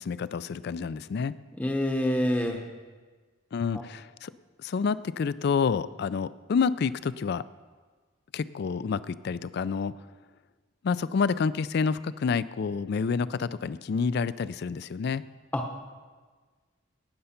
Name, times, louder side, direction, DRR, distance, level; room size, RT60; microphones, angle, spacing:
voice 1, 0.0-1.4 3.5-4.3 4.6-7.4 8.3-9.9 10.8-15.3, left 5 dB, 55° left, 17 dB, 0.3 m, -28 dB
voice 2, 1.6-2.7 15.5-15.9, equal, 10° left, 3 dB, 0.8 m, -27 dB
18.0 x 6.9 x 5.7 m, 1.4 s
head